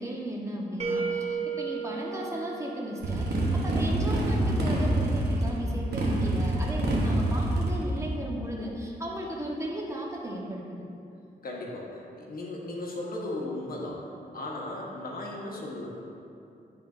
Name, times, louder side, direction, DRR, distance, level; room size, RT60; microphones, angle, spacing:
voice 1, 0.0-10.8, right 1 dB, 15° right, -3 dB, 1.2 m, -35 dB
sound 1, 0.8-3.7, right 5 dB, 40° right, 1.1 m, -34 dB
Motorcycle, 3.0-8.1, right 1 dB, 80° right, 1.0 m, -26 dB
voice 2, 11.4-14.1 14.3-15.9, left 2 dB, 60° left, -2 dB, 1.1 m, -36 dB
11.0 x 3.8 x 2.6 m, 2.7 s
cardioid pair, 60°, 17 cm